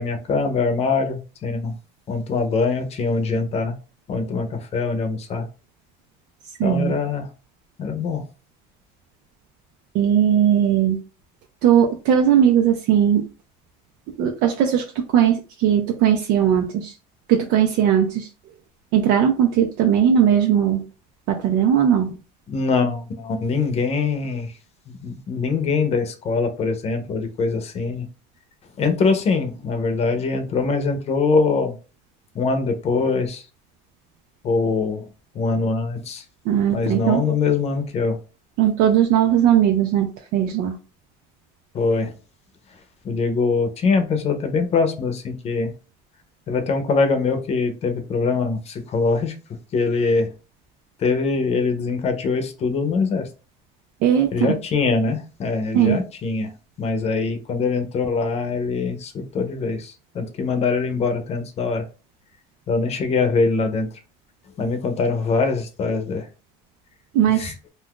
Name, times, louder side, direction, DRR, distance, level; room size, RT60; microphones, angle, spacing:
voice 1, 0.0-1.8 2.1-3.8 4.1-5.5 6.6-7.3 7.8-8.3 22.5-24.5 24.9-28.1 28.8-31.8 32.3-33.5 34.4-35.1 35.3-36.2 36.7-38.2 41.7-42.1 43.0-45.7 46.5-49.3 49.7-50.3 51.0-53.3 54.3-56.5 56.8-61.9 62.7-63.9 64.6-66.3 67.4-67.5, left 4 dB, 40° left, 7 dB, 0.6 m, -23 dB
voice 2, 6.6-6.9 9.9-11.0 11.6-13.2 14.2-16.9 17.3-18.3 18.9-20.8 21.3-22.1 36.4-37.2 38.6-40.1 40.3-40.7 54.0-54.5 55.7-56.0 67.1-67.5, right 9 dB, 80° right, 3 dB, 0.5 m, -18 dB
2.5 x 2.4 x 3.6 m, 0.33 s
cardioid pair, 135°, 17 cm